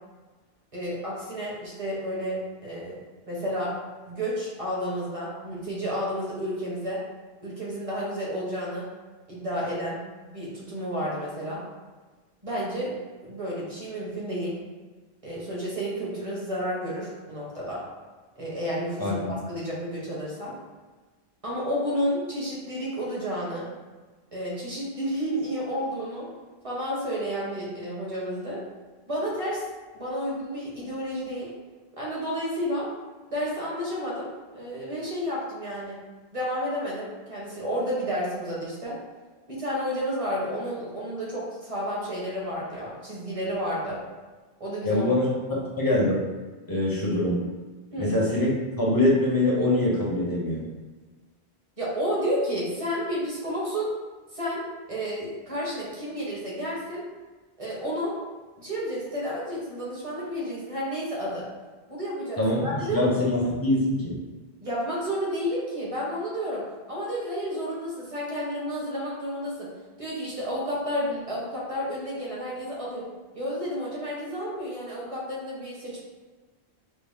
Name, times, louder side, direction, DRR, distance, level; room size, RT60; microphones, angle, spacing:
voice 1, 0.7-3.7 4.1-7.0 7.4-8.9 9.3-10.0 10.3-11.6 12.4-14.6 15.2-17.8 18.4-20.6 21.4-23.7 24.3-26.3 26.6-28.6 29.1-29.6 29.9-31.5 32.0-32.9 33.3-36.0 36.3-39.0 39.5-44.0 44.6-45.1 45.5-45.6 47.9-48.1 51.8-53.9 54.3-57.0 57.6-58.1 58.6-61.5 61.9-63.1 64.6-66.6 66.9-69.7 70.0-73.1 73.3-76.0, equal, 35° right, -6 dB, 1.1 m, -31 dB
voice 2, 19.0-19.3 44.8-45.3 45.8-46.2 46.7-47.4 48.0-50.7 62.4-64.2, left 1 dB, 20° left, -5 dB, 0.8 m, -24 dB
4.3 x 2.0 x 3.5 m, 1.3 s
omnidirectional pair, 1.1 m